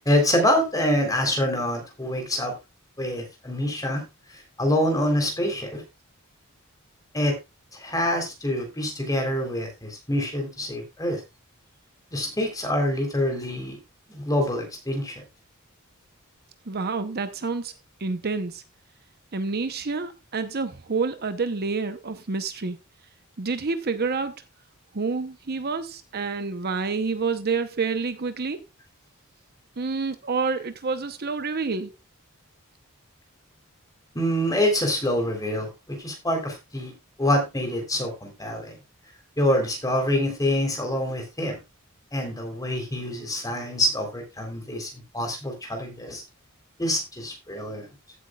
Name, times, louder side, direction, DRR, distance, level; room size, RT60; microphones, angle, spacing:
voice 1, 0.1-2.5 3.0-4.1 4.6-5.8 7.1-7.4 7.7-11.2 12.1-13.8 14.1-15.2 34.2-36.9 37.2-38.8 39.4-41.6 42.1-46.2 46.8-47.9, left 1 dB, 15° left, 3.6 m, -26 dB
voice 2, 16.7-17.7 18.0-18.6 19.3-22.8 23.4-24.3 24.9-28.6 29.8-31.9, right 4 dB, 45° right, 0.8 m, -28 dB
15.0 x 8.2 x 2.4 m
head